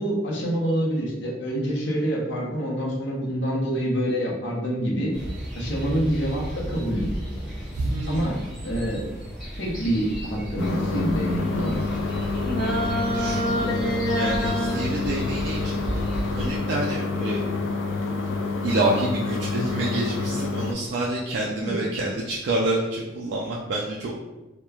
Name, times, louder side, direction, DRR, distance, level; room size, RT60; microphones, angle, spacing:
voice 1, 0.0-5.1 5.5-7.1 8.1-9.1 9.6-11.8 21.7-21.8, equal, 65° left, -3 dB, 0.7 m, -26 dB
sound 1, 5.1-16.5, equal, ahead, 1.0 m, -34 dB
voice 2, 7.7-8.4 13.0-17.4 18.6-24.2, right 2 dB, 65° right, -3 dB, 0.3 m, -28 dB
sound 2, 10.6-20.7, left 3 dB, 90° left, 0.3 m, -28 dB
sound 3, 12.5-14.8, equal, 25° left, 0.5 m, -26 dB
2.9 x 2.1 x 2.3 m, 1.1 s
head